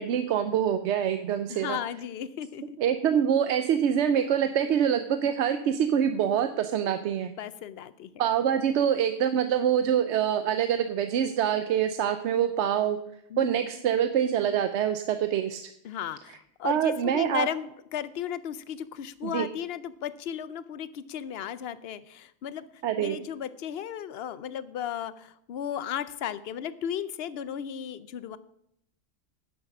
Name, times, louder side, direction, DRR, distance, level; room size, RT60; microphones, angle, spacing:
voice 1, 0.0-1.8 2.8-7.3 8.2-13.0 13.4-15.6 16.6-17.5 19.2-19.5 22.8-23.2, right 9 dB, 70° right, 9 dB, 0.9 m, -25 dB
voice 2, 1.5-2.8 7.4-8.1 13.3-13.7 15.8-22.7 23.0-28.4, left 9 dB, 60° left, 15 dB, 0.8 m, -35 dB
10.5 x 7.5 x 6.0 m, 0.76 s
omnidirectional pair, 1.3 m